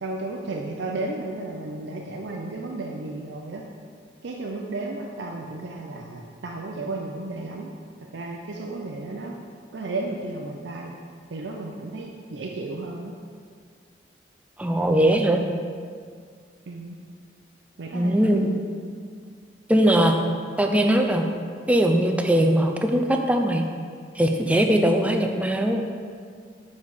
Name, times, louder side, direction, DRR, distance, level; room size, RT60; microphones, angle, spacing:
voice 1, 0.0-3.6 4.2-7.7 8.1-9.3 9.7-10.9 11.3-13.1 16.7-17.0 17.8-18.5, right 2 dB, 75° right, -1 dB, 0.5 m, -33 dB
voice 2, 14.6-15.4 17.9-18.6 19.7-20.1 20.6-21.2 21.7-23.7 24.1-25.8, right 1 dB, 10° right, 4 dB, 0.4 m, -20 dB
7.0 x 4.2 x 4.7 m, 2.1 s
head